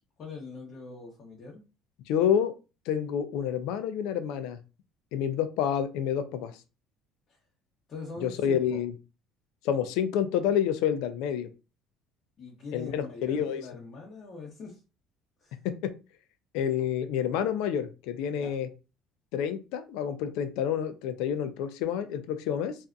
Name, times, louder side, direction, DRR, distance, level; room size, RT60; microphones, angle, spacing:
voice 1, 0.2-1.6 7.3-7.4 7.9-8.8 12.4-14.8 15.4-15.6 18.3-18.6, left 4 dB, 45° left, -4 dB, 0.8 m, -43 dB
voice 2, 2.1-2.5 2.9-4.6 5.1-6.5 8.2-8.9 9.6-11.5 12.7-13.6 15.6-15.9 16.5-18.7 19.3-22.8, left 9 dB, 80° left, 10 dB, 0.4 m, -28 dB
2.6 x 2.4 x 2.2 m, 0.31 s
cardioid pair, 120°, 0 cm